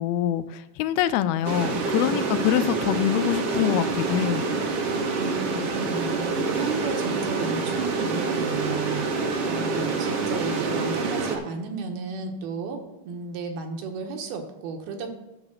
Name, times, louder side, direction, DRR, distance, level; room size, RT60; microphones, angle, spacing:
voice 1, 0.0-4.5, left 12 dB, 85° left, 13 dB, 2.4 m, -25 dB
sound 1, 1.4-11.4, right 4 dB, 65° right, 1.5 m, -27 dB
voice 2, 5.2-9.0 9.5-12.8 13.0-15.1, right 4 dB, 80° right, 3 dB, 3.1 m, -33 dB
12.5 x 4.9 x 6.4 m, 1.1 s
omnidirectional pair, 4.4 m